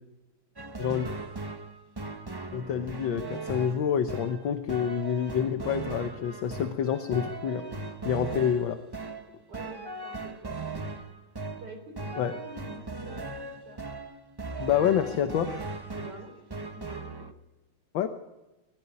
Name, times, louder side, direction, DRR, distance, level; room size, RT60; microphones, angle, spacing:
sound 1, 0.6-17.3, right 3 dB, 35° right, 0.4 m, -38 dB
voice 1, 0.8-1.1 2.5-7.7 8.0-8.8 12.2-12.3 14.6-15.5 17.9-18.1, left 8 dB, 65° left, 7 dB, 1.7 m, -27 dB
voice 2, 9.5-11.0 11.5-13.8 15.9-17.3, right 1 dB, 50° right, 5 dB, 4.3 m, -47 dB
20.5 x 15.5 x 9.6 m, 1.1 s
omnidirectional pair, 2.3 m